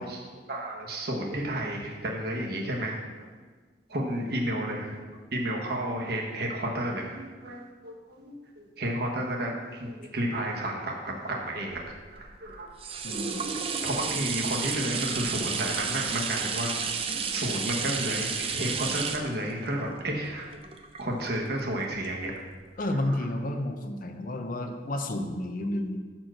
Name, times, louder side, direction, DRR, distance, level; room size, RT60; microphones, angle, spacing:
voice 1, 0.0-3.0 3.9-5.0 5.3-11.8 12.1-12.7 13.7-20.7 21.0-22.3 22.8-23.2, right 1 dB, 60° right, -1 dB, 1.2 m, -32 dB
sound 1, 11.8-21.5 22.0-22.1, right 5 dB, 30° right, 0.5 m, -32 dB
voice 2, 13.0-13.4 22.8-26.0, left 1 dB, 50° left, 6 dB, 0.7 m, -31 dB
6.1 x 4.4 x 6.3 m, 1.5 s
head